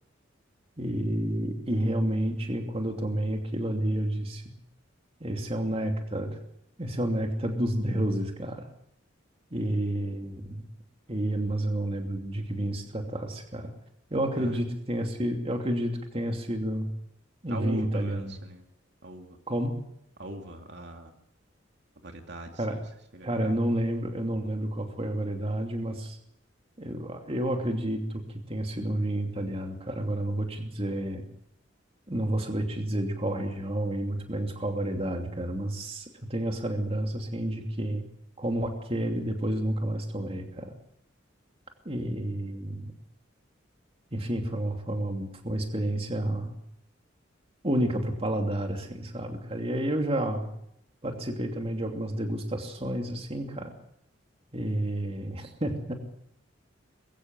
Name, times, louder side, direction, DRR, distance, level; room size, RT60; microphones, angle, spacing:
voice 1, 0.8-4.5 5.2-6.4 6.8-8.7 9.5-10.6 11.1-13.7 14.1-16.9 17.4-18.4 19.5-19.7 22.6-22.8 23.2-26.2 26.8-28.2 28.5-31.2 32.1-38.0 38.4-40.7 41.8-42.9 44.1-46.5 47.6-50.5 51.0-53.7 54.5-55.9, right 1 dB, 30° right, 4 dB, 2.8 m, -30 dB
voice 2, 17.5-18.6 19.0-19.4 20.2-21.1 22.0-22.8 23.1-23.6, right 1 dB, 60° right, 4 dB, 2.5 m, -41 dB
22.0 x 16.0 x 7.7 m, 0.76 s
head